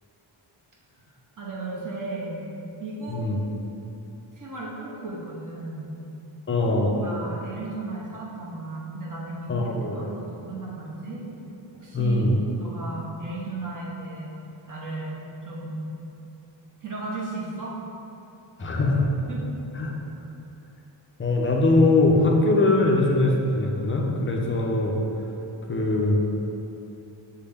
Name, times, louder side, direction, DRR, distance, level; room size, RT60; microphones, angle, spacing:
voice 1, 1.4-2.4 2.8-3.3 4.4-6.0 6.6-11.2 11.7-12.3 12.6-14.4 14.7-15.8 16.8-17.8 19.3-19.4, right 2 dB, 40° right, -5 dB, 1.0 m, -35 dB
voice 2, 3.1-3.4 6.5-6.9 9.5-10.2 11.9-12.4 18.6-19.1 19.7-19.9 21.2-25.0 25.7-26.3, left 2 dB, 25° left, 0 dB, 0.5 m, -22 dB
6.6 x 2.2 x 3.4 m, 2.9 s
wide cardioid pair, 95°, 49 cm